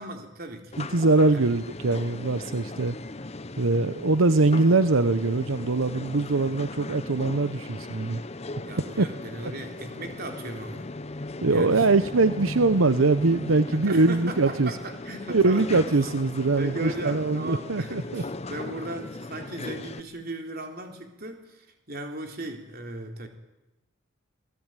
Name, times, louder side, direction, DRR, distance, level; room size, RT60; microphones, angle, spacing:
voice 1, 0.0-0.8 1.3-1.4 8.6-10.9 11.5-12.0 13.7-15.9 16.6-23.3, right 2 dB, 50° right, 4 dB, 3.7 m, -37 dB
sound 1, 0.7-20.0, left 2 dB, 30° left, 0.9 m, -38 dB
voice 2, 0.8-2.9 3.6-8.2 9.0-9.1 11.4-14.8 15.3-18.2, right 3 dB, 85° right, 12 dB, 0.9 m, -22 dB
28.5 x 19.0 x 9.1 m, 1.0 s
head